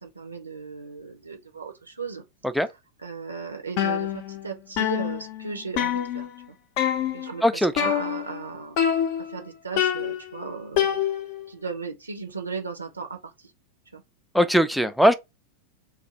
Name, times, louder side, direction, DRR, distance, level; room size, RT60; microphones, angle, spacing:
voice 1, 0.0-2.2 3.0-6.3 7.1-8.8 9.2-11.0 11.5-13.5 13.9-14.0, right 4 dB, 80° right, 0.6 m, -36 dB
sound 1, 3.8-4.5 4.8-6.5 6.8-7.3 7.8-8.4 8.8-9.4 9.8-11.5, left 10 dB, 45° left, 0.6 m, -26 dB
voice 2, 7.4-7.7 14.3-15.1, equal, ahead, 0.4 m, -19 dB
2.5 x 2.5 x 4.1 m
figure-of-eight pair, 90°, 0 cm